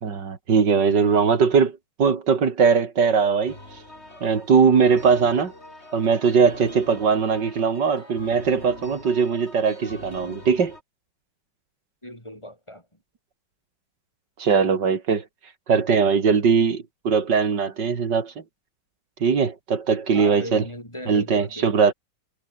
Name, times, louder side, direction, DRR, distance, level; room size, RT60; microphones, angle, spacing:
voice 1, 0.0-3.6 4.2-5.5 5.9-10.8 14.4-15.2 15.7-18.3 19.2-20.6 21.1-21.9, right 6 dB, 85° right, 2.9 m, -20 dB
sound 1, 3.5-10.8, left 1 dB, 35° left, 6.7 m, -43 dB
voice 2, 12.0-12.8 20.1-21.7, equal, 15° left, 7.2 m, -37 dB
omnidirectional pair, 1.8 m